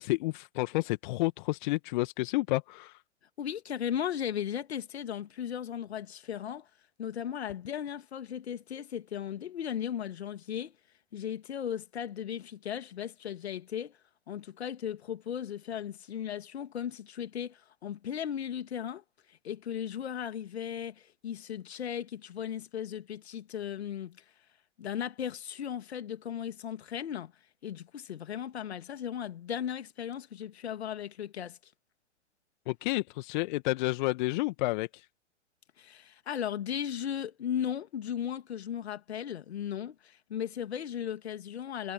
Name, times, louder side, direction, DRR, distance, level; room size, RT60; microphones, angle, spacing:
voice 1, 0.0-3.0 32.7-35.0, left 20 dB, 40° left, 1.6 m, -30 dB
voice 2, 3.4-6.7 7.0-10.8 11.1-14.0 14.3-24.2 24.8-27.3 27.6-31.6 35.8-41.9, left 9 dB, 60° left, 2.4 m, -36 dB
figure-of-eight pair, 110°, 36 cm